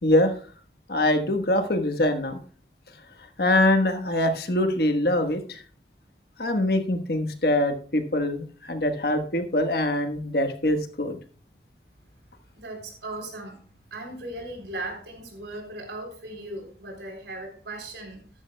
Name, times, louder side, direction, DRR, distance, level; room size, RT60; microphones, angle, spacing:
voice 1, 0.0-0.3 0.9-2.4 3.4-5.6 6.4-11.2, left 1 dB, 60° left, 6 dB, 1.3 m, -23 dB
voice 2, 12.5-18.2, right 2 dB, 80° right, 3 dB, 3.7 m, -38 dB
13.0 x 11.0 x 2.3 m, 0.40 s
head